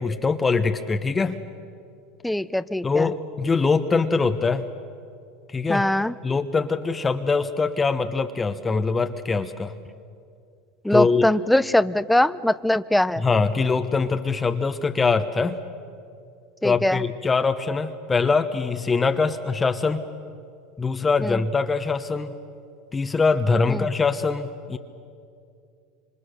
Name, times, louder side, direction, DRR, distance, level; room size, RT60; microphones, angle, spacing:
voice 1, 0.0-1.4 2.8-4.7 5.5-5.9 6.2-9.7 10.9-11.3 13.2-15.6 16.6-20.0 20.8-22.3 22.9-24.8, left 4 dB, 20° left, 8 dB, 1.1 m, -23 dB
voice 2, 2.2-3.1 5.7-6.1 10.8-13.2 16.6-17.0 21.2-21.4 23.7-23.9, left 1 dB, 5° left, 16 dB, 0.6 m, -22 dB
26.5 x 25.5 x 6.7 m, 2.4 s
supercardioid pair, 105°, 0 cm